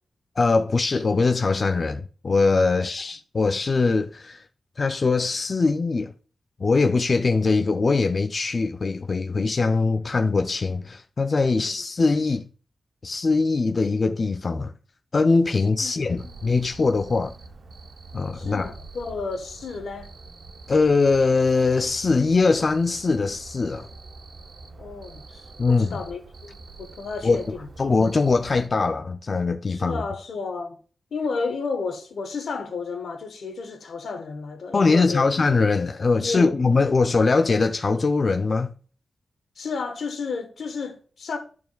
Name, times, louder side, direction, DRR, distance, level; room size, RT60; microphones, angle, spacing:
voice 1, 0.4-4.4 4.8-6.1 6.6-12.5 13.0-14.7 15.1-17.3 18.1-18.7 20.7-23.9 25.6-26.0 27.2-27.4 27.8-30.0 34.7-38.7, left 4 dB, 35° left, 0.3 m, -22 dB
voice 2, 15.8-16.3 18.3-20.1 24.8-27.7 29.7-30.8 31.1-35.3 36.2-36.6 39.6-41.4, left 4 dB, 80° left, 1.2 m, -32 dB
Cricket, 16.2-28.7, right 3 dB, 55° right, 0.7 m, -45 dB
12.5 x 4.6 x 2.3 m
wide cardioid pair, 170°, 0 cm